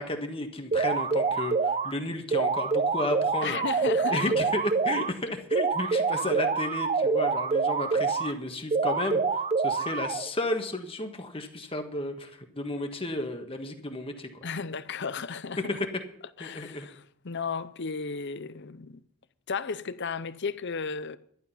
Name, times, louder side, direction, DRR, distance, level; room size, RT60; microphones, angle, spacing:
voice 1, 0.0-3.6 4.1-14.3 16.4-16.9, left 1 dB, 25° left, 1.5 m, -33 dB
sound 1, 0.7-1.9 2.3-5.1 5.5-8.3 8.7-10.3, right 4 dB, 30° right, 0.6 m, -26 dB
voice 2, 3.4-4.3 14.4-15.8 16.4-19.0 19.5-21.2, left 5 dB, 55° left, 0.7 m, -34 dB
12.0 x 11.5 x 5.7 m
head